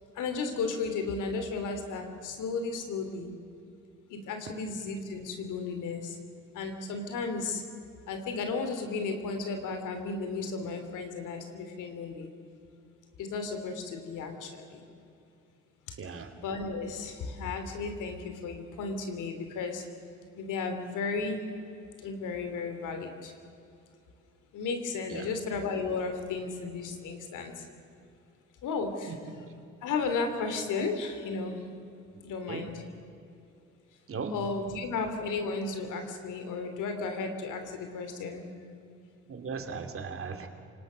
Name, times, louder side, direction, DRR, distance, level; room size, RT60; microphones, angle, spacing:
voice 1, 0.1-3.3 4.1-6.2 6.5-7.6 8.1-12.3 13.2-14.8 15.9-16.0 16.4-19.8 20.4-21.4 22.0-23.3 24.5-27.7 28.6-29.1 29.8-31.6 32.2-32.8 34.3-38.5, left 4 dB, 85° left, 6 dB, 3.0 m, -34 dB
voice 2, 16.0-16.3 25.1-25.3 29.1-29.4 32.5-32.7 34.1-34.4 39.3-40.5, right 5 dB, 45° right, 6 dB, 2.7 m, -37 dB
27.5 x 18.5 x 6.4 m, 2.7 s
cardioid pair, 90°, 30 cm